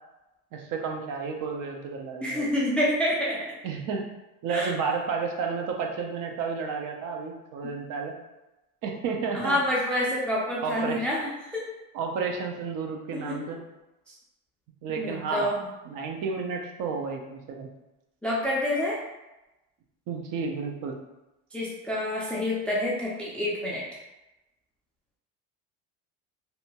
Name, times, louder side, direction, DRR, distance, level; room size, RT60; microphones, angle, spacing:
voice 1, 0.5-2.5 3.6-4.0 4.4-8.2 8.8-9.6 10.6-11.1 11.9-13.6 14.8-15.5 15.8-17.7 20.1-21.0, right 5 dB, 50° right, 2 dB, 0.5 m, -31 dB
voice 2, 2.2-3.5 4.5-4.7 9.3-11.6 13.1-13.4 15.0-15.6 18.2-19.0 21.5-23.8, left 1 dB, 5° left, -4 dB, 0.3 m, -28 dB
2.7 x 2.2 x 2.8 m, 0.99 s
supercardioid pair, 110°, 41 cm